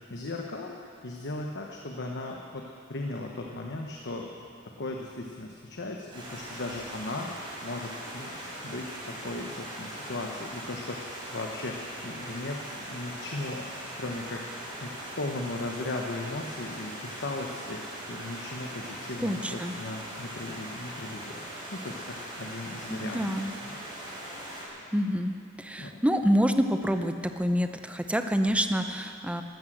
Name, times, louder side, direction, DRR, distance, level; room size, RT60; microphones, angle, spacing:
voice 1, 0.1-4.3 4.6-8.4 8.6-13.7 13.9-14.4 14.8-17.8 18.1-21.4 21.7-23.7 25.8-26.0, left 2 dB, 55° left, 1 dB, 1.1 m, -37 dB
Stream, 6.1-24.7, right 1 dB, 20° right, 4.6 m, -40 dB
voice 2, 19.2-19.7 22.9-23.5 24.9-29.4, equal, 5° right, 7 dB, 0.7 m, -27 dB
14.0 x 12.5 x 7.9 m, 2.5 s
head